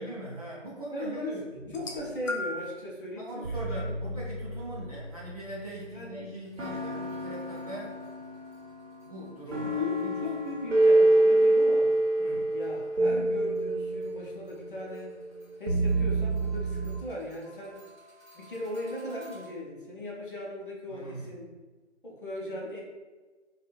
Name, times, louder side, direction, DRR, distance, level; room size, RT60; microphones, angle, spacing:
voice 1, 0.0-1.6 3.2-8.0 9.0-10.2 12.2-12.4 20.9-21.3, right 1 dB, 30° right, -7 dB, 0.6 m, -41 dB
voice 2, 0.9-3.9 5.9-6.3 9.8-11.9 12.5-15.1 15.6-17.8 18.3-21.5 22.0-22.8, left 1 dB, 45° left, -3 dB, 0.6 m, -38 dB
sound 1, 1.5-2.7 3.4-6.0 6.6-17.0, right 2 dB, 85° right, 0.8 m, -28 dB
sound 2, 1.7-2.8 3.7-3.9 4.9-5.0, left 2 dB, 85° left, 0.6 m, -36 dB
sound 3, 6.4-12.7 13.0-19.4, equal, 10° left, 0.6 m, -57 dB
2.4 x 2.3 x 3.0 m, 1.3 s
figure-of-eight pair, 150°, 36 cm